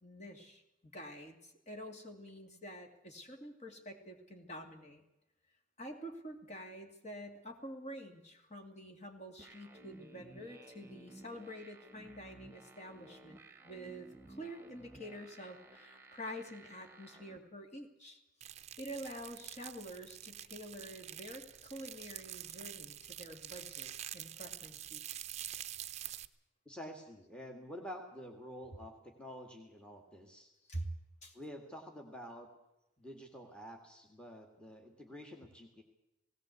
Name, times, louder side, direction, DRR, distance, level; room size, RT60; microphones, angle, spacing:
voice 1, 0.0-5.0 5.8-18.2 18.8-25.3 30.7-30.9 31.2-31.4, equal, 35° left, 4 dB, 2.4 m, -48 dB
sound 1, 9.4-17.4, right 2 dB, 10° right, 1.7 m, -56 dB
sound 2, 18.4-26.3, right 11 dB, 35° right, 0.7 m, -47 dB
voice 2, 26.7-30.5 31.3-32.5 33.0-35.8, equal, 5° left, 3 dB, 1.9 m, -49 dB
18.0 x 18.0 x 8.2 m, 0.93 s
head